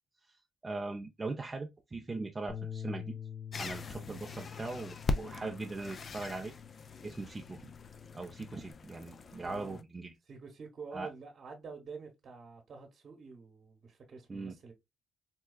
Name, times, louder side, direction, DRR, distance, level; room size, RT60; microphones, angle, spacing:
voice 1, 0.6-3.2 3.6-6.5 7.0-7.7 8.1-10.1 10.9-11.1 14.3-14.5, right 3 dB, 25° right, 0.5 m, -40 dB
Bass guitar, 2.5-8.7, left 8 dB, 5° left, 0.9 m, -47 dB
sound 1, 3.5-9.8, left 3 dB, 45° left, 0.4 m, -41 dB
voice 2, 9.4-9.8 10.3-14.7, right 4 dB, 50° right, 1.0 m, -47 dB
4.4 x 2.2 x 2.2 m
cardioid pair, 90°, 0 cm